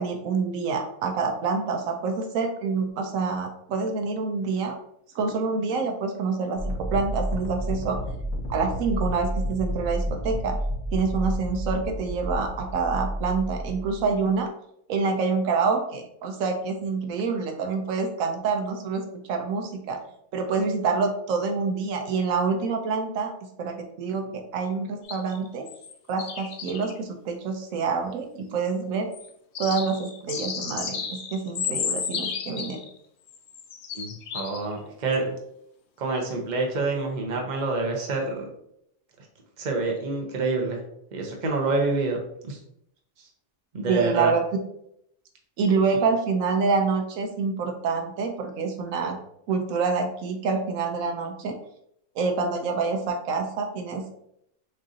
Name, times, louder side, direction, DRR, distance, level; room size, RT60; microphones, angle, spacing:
voice 1, 0.0-4.7 5.1-8.0 8.5-10.6 10.9-14.5 14.9-20.0 20.3-23.3 23.6-25.6 26.1-29.1 29.6-32.8 43.9-44.4 45.6-49.2 49.5-51.6 52.2-54.2, right 4 dB, 85° right, 4 dB, 1.1 m, -27 dB
sound 1, 6.6-14.3, equal, 80° left, 1.2 m, -31 dB
sound 2, 25.0-25.9 26.2-26.9 29.1-29.3 29.5-33.0 33.3-34.8 35.1-35.2, left 6 dB, 60° left, 0.8 m, -33 dB
voice 2, 33.9-35.3 36.0-38.5 39.6-40.8 41.1-42.6 43.7-44.3, right 3 dB, 40° right, 1 dB, 0.9 m, -27 dB
6.4 x 2.5 x 2.7 m, 0.74 s
omnidirectional pair, 1.4 m